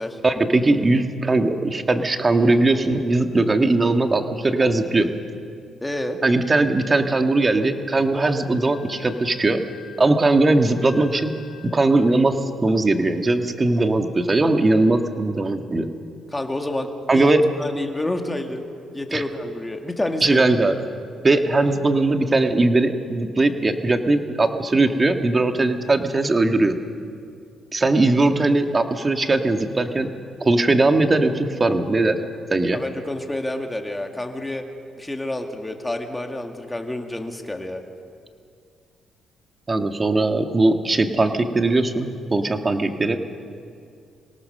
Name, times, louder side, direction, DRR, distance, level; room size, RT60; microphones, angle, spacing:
voice 1, 0.2-5.1 6.2-9.6 10.0-11.3 11.7-12.4 12.6-15.9 17.1-17.4 19.1-19.2 20.2-20.8 21.2-26.8 27.7-30.1 30.4-32.2 32.5-32.8 39.7-43.2, right 2 dB, 25° right, 6 dB, 1.6 m, -19 dB
voice 2, 5.8-6.2 16.3-17.3 17.6-18.6 18.9-20.4 32.7-34.6 35.0-37.8, left 1 dB, 10° left, 4 dB, 2.2 m, -28 dB
Wind instrument woodwind instrument, 8.2-11.9, left 6 dB, 80° left, 3.4 m, -48 dB
26.0 x 18.0 x 6.7 m, 2.3 s
cardioid pair, 90°, 0 cm